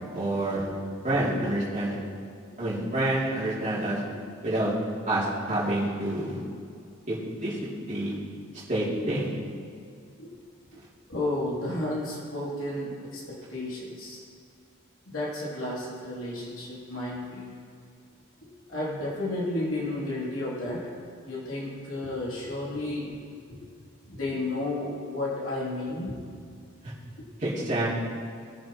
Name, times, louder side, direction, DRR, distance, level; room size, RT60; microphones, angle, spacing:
voice 1, 0.1-0.7 1.0-2.0 2.6-4.0 4.4-4.7 5.1-6.4 7.1-7.6 7.9-8.1 8.7-9.3 27.4-27.9, right 1 dB, 35° right, -8 dB, 2.8 m, -27 dB
voice 2, 11.1-14.2 15.1-17.4 18.7-20.8 21.2-23.1 23.5-23.6 24.1-26.1, left 1 dB, 75° left, -6 dB, 2.9 m, -32 dB
20.5 x 7.5 x 3.0 m, 2.3 s
head